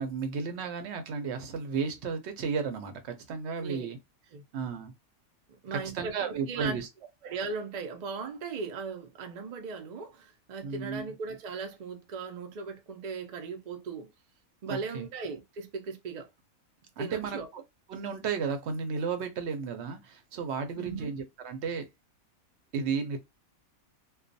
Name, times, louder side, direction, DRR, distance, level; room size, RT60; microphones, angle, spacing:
voice 1, 0.0-4.0 4.5-4.9 5.7-6.9 10.6-11.0 14.7-15.1 17.0-17.6 17.9-21.9 22.7-23.2, right 5 dB, 65° right, 0.7 m, -33 dB
voice 2, 5.5-6.8 7.2-14.1 14.6-16.3 17.0-17.5 20.8-21.1, right 5 dB, 80° right, 0.3 m, -38 dB
2.3 x 2.2 x 2.5 m
omnidirectional pair, 1.5 m